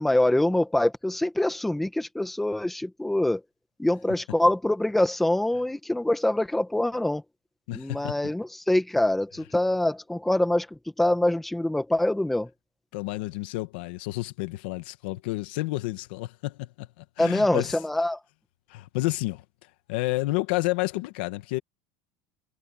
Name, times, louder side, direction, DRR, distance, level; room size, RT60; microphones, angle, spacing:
voice 1, 0.0-3.4 3.8-7.2 7.7-12.5 17.2-18.2, left 1 dB, 5° left, 1.4 m, -24 dB
voice 2, 7.7-8.1 12.9-17.7 18.7-19.4 19.9-21.6, left 20 dB, 65° left, 1.5 m, -30 dB
cardioid pair, 180°, 6 cm